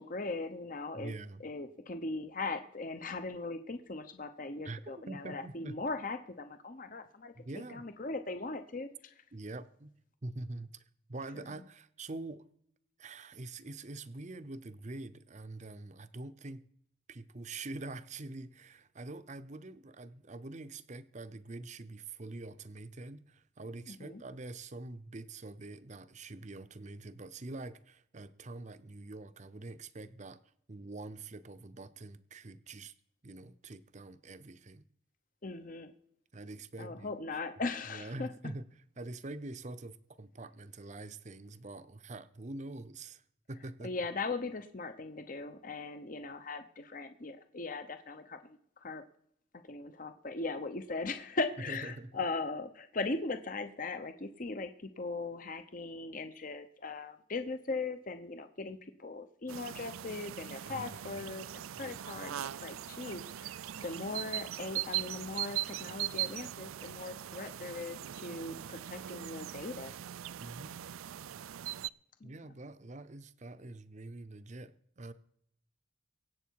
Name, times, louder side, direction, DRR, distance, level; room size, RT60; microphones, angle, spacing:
voice 1, 0.0-1.1 1.4-7.3 7.7-9.1 24.0-24.2 35.4-35.9 36.8-38.3 43.8-49.0 49.7-63.5 63.8-69.9 72.2-72.3, left 3 dB, 40° left, 0.8 m, -39 dB
voice 2, 0.9-1.4 4.6-5.8 7.4-7.8 9.3-9.9 10.2-10.8 11.1-12.4 13.0-16.7 17.1-30.4 30.7-32.9 33.2-34.8 36.3-37.1 37.9-43.2 43.5-43.9 51.7-52.2 60.6-61.2 61.7-62.1 70.4-70.7 72.2-75.1, right 2 dB, 35° right, 0.7 m, -45 dB
sound 1, 59.5-71.9, right 12 dB, 85° right, 0.4 m, -40 dB
24.0 x 8.0 x 4.7 m
head